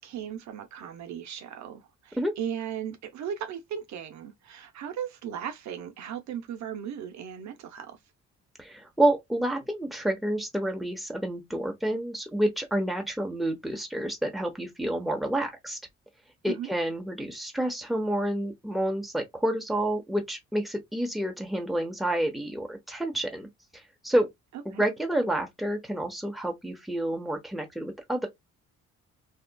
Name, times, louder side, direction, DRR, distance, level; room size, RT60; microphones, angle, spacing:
voice 1, 0.0-8.0 16.5-16.7 24.7-24.8, right 9 dB, 65° right, 0.6 m, -37 dB
voice 2, 8.6-15.8 16.4-23.5 24.0-24.3 24.6-28.3, right 1 dB, ahead, 0.9 m, -29 dB
2.8 x 2.4 x 2.2 m
cardioid pair, 90°, 30 cm